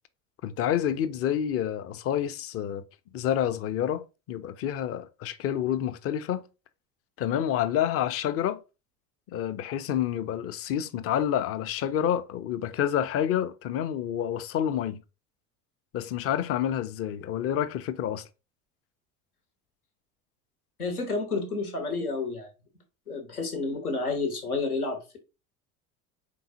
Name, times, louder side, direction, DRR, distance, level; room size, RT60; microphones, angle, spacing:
voice 1, 0.4-2.8 3.1-4.0 4.3-6.4 7.2-8.6 9.3-15.0 15.9-18.3, left 10 dB, 35° left, 0.5 m, -28 dB
voice 2, 20.8-22.5 23.1-25.2, left 3 dB, 85° left, 1.1 m, -30 dB
4.6 x 3.7 x 2.7 m
figure-of-eight pair, 65°, 43 cm